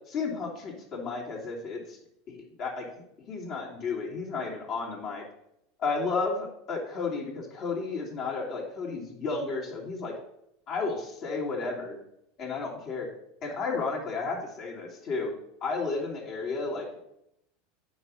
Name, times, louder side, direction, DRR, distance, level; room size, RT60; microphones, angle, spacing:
voice 1, 0.1-2.0 2.3-2.9 3.3-5.2 5.8-10.1 10.7-12.0 12.4-13.1 13.4-15.3 15.6-16.9, left 4 dB, 50° left, -3 dB, 3.0 m, -32 dB
9.3 x 4.2 x 6.4 m, 0.79 s
hypercardioid pair, 95°, 0 cm